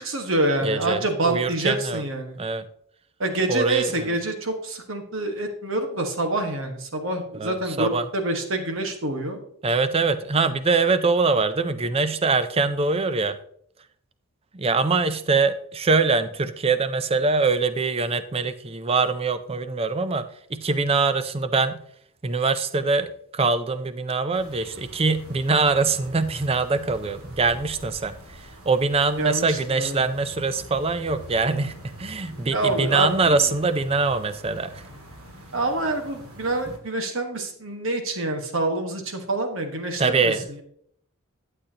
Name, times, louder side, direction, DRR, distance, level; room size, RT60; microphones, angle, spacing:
voice 1, 0.0-2.4 3.2-9.4 29.2-30.0 32.5-33.3 35.5-40.3, right 2 dB, 60° right, 5 dB, 1.5 m, -26 dB
voice 2, 0.6-2.0 2.4-2.7 3.5-4.2 7.3-8.1 9.6-13.4 14.5-21.8 22.2-34.8 40.0-40.6, right 4 dB, 25° right, 12 dB, 0.5 m, -23 dB
sound 1, 24.3-36.8, equal, 75° right, 2.0 m, -45 dB
11.5 x 8.2 x 2.9 m, 0.68 s
head